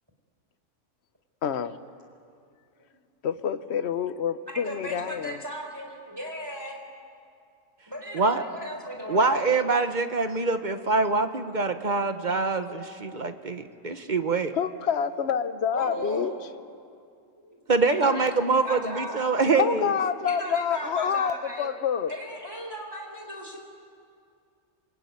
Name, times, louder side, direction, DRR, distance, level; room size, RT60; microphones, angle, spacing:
voice 1, 1.4-1.8 3.2-5.4 14.5-16.3 19.5-22.1, left 7 dB, 65° left, 11 dB, 1.2 m, -27 dB
voice 2, 4.4-6.8 7.9-9.5 15.7-16.3 17.4-17.6 17.9-18.3 18.5-19.3 20.3-21.7 22.1-23.6, equal, 20° right, 2 dB, 4.0 m, -36 dB
voice 3, 9.1-14.5 17.7-19.9, right 4 dB, 40° right, 8 dB, 1.3 m, -24 dB
27.0 x 22.5 x 9.7 m, 2.3 s
omnidirectional pair, 1.2 m